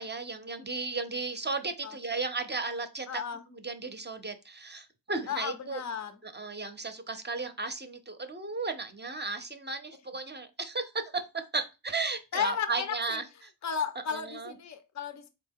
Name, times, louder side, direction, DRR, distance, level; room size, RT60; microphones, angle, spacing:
voice 1, 0.0-3.2 3.5-5.8 6.2-13.2 14.1-14.5, right 3 dB, 25° right, 0.6 m, -35 dB
voice 2, 3.1-3.4 5.3-6.2 12.3-13.2 13.6-15.3, left 7 dB, 40° left, 0.5 m, -34 dB
4.0 x 2.2 x 3.5 m
wide cardioid pair, 65°, 45 cm